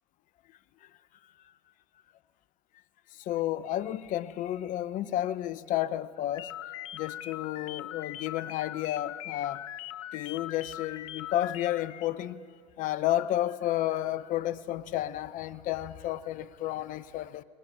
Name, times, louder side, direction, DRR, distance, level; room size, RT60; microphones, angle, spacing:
voice 1, 3.3-6.5 6.9-9.6 10.1-12.4 12.8-17.4, left 13 dB, 55° left, 15 dB, 0.9 m, -31 dB
sound 1, 6.3-12.1, left 13 dB, 85° left, 0.9 m, -41 dB
21.0 x 20.5 x 8.8 m, 2.3 s
hypercardioid pair, 90°, 16 cm